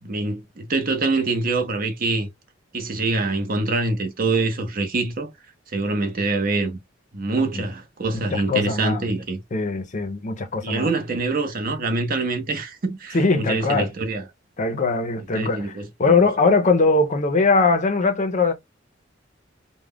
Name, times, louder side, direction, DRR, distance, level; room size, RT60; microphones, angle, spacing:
voice 1, 0.0-2.3 2.7-5.3 5.7-6.8 7.1-9.4 10.6-14.2 15.2-16.2, right 3 dB, 50° right, 0.6 m, -25 dB
voice 2, 8.3-9.1 9.5-10.9 13.1-13.9 14.6-15.7 16.0-18.5, left 3 dB, 40° left, 0.5 m, -21 dB
2.3 x 2.1 x 3.4 m
head